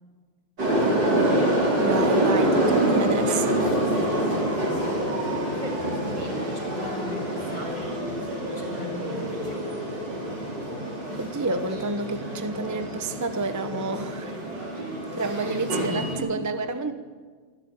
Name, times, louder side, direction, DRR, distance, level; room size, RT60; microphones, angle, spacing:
sound 1, 0.6-16.2, right 1 dB, 55° right, 5.2 m, -26 dB
voice 1, 1.8-3.6 11.2-14.3 15.2-16.0 16.3-16.9, right 3 dB, 20° right, 8 dB, 0.4 m, -29 dB
voice 2, 4.2-4.5 5.5-8.1 8.4-9.7 14.7-14.9 15.3-16.5, left 1 dB, 60° left, 1 dB, 6.4 m, -39 dB
27.0 x 12.5 x 8.9 m, 1.6 s
omnidirectional pair, 2.3 m